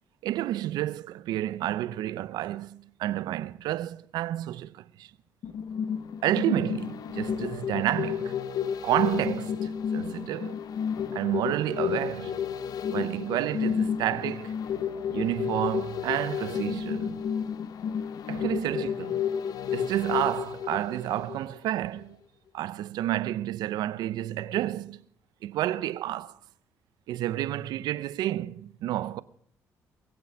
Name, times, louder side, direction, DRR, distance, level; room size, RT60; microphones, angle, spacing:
voice 1, 0.2-5.1 6.2-8.4 8.8-10.6 11.1-12.4 12.9-14.6 15.1-17.3 18.3-19.3 19.7-22.2 22.5-25.0 25.4-26.3 27.1-29.2, right 13 dB, 80° right, 0.6 m, -30 dB
sound 1, 5.4-21.7 22.0-22.1, left 7 dB, 60° left, 0.9 m, -31 dB
22.0 x 7.7 x 5.8 m
supercardioid pair, 75°, 7 cm